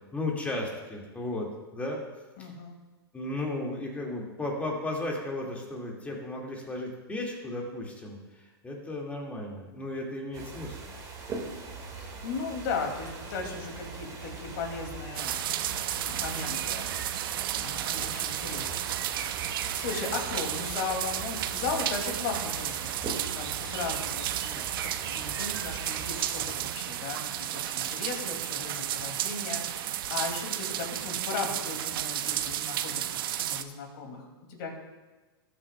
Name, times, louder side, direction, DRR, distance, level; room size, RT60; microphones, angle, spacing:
voice 1, 0.1-1.5 1.7-2.0 2.4-2.5 3.1-10.8, left 2 dB, 10° left, -1 dB, 2.1 m, -35 dB
voice 2, 2.4-2.8 11.9-15.4 15.9-16.9 17.6-18.8 19.1-19.5 19.8-27.2 27.5-34.7, left 4 dB, 50° left, 2 dB, 2.6 m, -37 dB
sound 1, 10.3-27.1, right 4 dB, 25° right, 2.0 m, -42 dB
sound 2, 15.1-33.6, right 12 dB, 60° right, 0.6 m, -33 dB
19.5 x 7.5 x 2.3 m, 1.2 s
hypercardioid pair, 125°, 13 cm